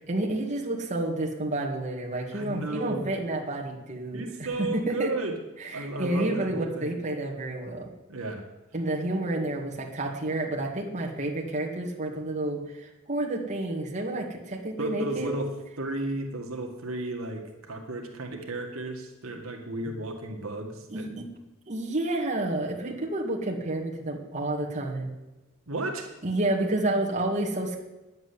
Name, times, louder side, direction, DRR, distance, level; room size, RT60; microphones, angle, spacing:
voice 1, 0.1-4.2 4.6-5.1 5.6-7.9 8.7-15.3 19.8-20.0 20.9-21.2 21.7-25.1 26.2-27.8, right 2 dB, 35° right, -2 dB, 2.3 m, -30 dB
voice 2, 2.3-3.0 4.1-5.4 5.7-7.0 8.1-8.4 14.8-15.5 15.8-21.1 25.7-26.1, right 2 dB, 85° right, 3 dB, 1.9 m, -34 dB
10.5 x 7.9 x 9.8 m, 1.1 s
head